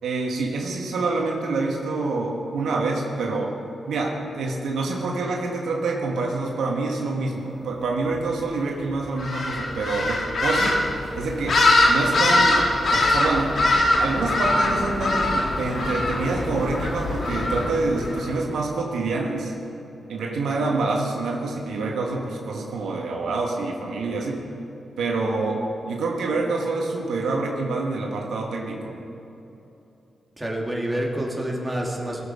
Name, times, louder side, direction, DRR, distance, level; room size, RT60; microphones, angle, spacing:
voice 1, 0.0-3.6 3.9-10.8 11.1-12.6 12.9-13.6 14.0-19.5 20.1-24.4 25.0-29.0, right 3 dB, 80° right, 0 dB, 1.3 m, -26 dB
sound 1, 9.2-18.3, left 2 dB, 65° left, 2.0 m, -22 dB
voice 2, 30.4-32.3, right 1 dB, 15° right, -2 dB, 2.7 m, -28 dB
17.0 x 7.5 x 4.9 m, 3.0 s
supercardioid pair, 50°, 0 cm